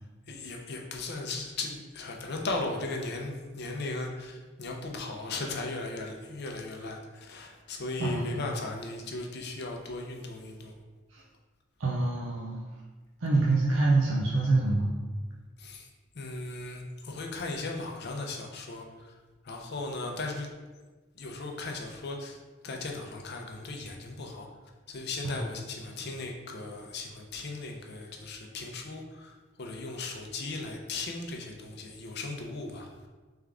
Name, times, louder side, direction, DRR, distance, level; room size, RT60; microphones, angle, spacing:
voice 1, 0.3-10.8 15.6-15.9 16.1-19.1 19.4-20.5 21.2-22.4 22.6-24.5 24.9-32.9, left 2 dB, 55° left, 1 dB, 0.6 m, -37 dB
voice 2, 8.0-8.5 11.1-11.2 11.8-12.7 13.2-14.9 25.2-25.3, right 2 dB, 70° right, -4 dB, 0.6 m, -26 dB
3.6 x 3.5 x 3.4 m, 1.3 s
head